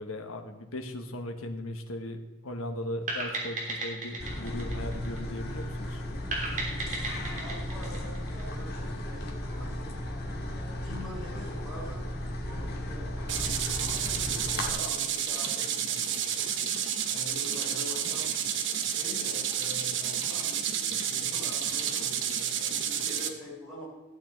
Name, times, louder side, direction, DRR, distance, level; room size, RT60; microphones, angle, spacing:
voice 1, 0.0-6.0, left 1 dB, 75° left, 6 dB, 1.4 m, -38 dB
sound 1, 3.1-5.6 6.3-8.9, right 2 dB, 35° right, 3.0 m, -35 dB
sound 2, 4.2-14.7, left 1 dB, 45° left, 1.9 m, -35 dB
voice 2, 7.4-9.9 10.5-16.5 17.1-18.3 18.8-23.8, left 1 dB, ahead, -8 dB, 4.2 m, -45 dB
sound 3, 13.3-23.3, right 8 dB, 55° right, 1.0 m, -30 dB
14.5 x 8.9 x 4.5 m, 1.2 s
head